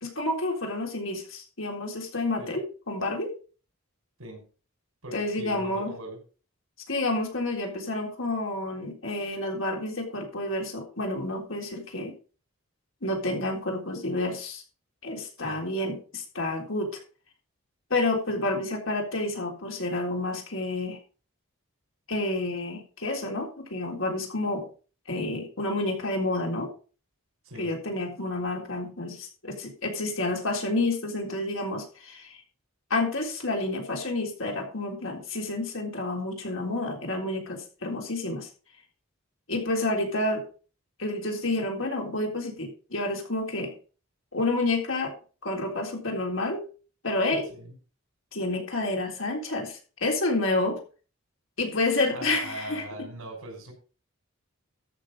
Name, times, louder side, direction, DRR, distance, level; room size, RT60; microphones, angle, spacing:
voice 1, 0.0-3.3 5.1-5.9 6.9-12.1 13.0-14.6 15.0-17.0 17.9-21.0 22.1-24.7 25.1-26.7 27.6-32.4 32.9-38.5 39.5-40.5 41.0-43.7 44.3-45.1 45.4-46.6 47.0-47.5 48.3-50.8 51.6-52.8, left 2 dB, 65° left, 1 dB, 3.7 m, -29 dB
voice 2, 5.0-6.2 15.4-15.6 27.4-27.7 47.5-47.8 52.1-53.7, right 1 dB, 85° right, 3 dB, 5.5 m, -40 dB
13.5 x 6.3 x 5.2 m, 0.37 s
head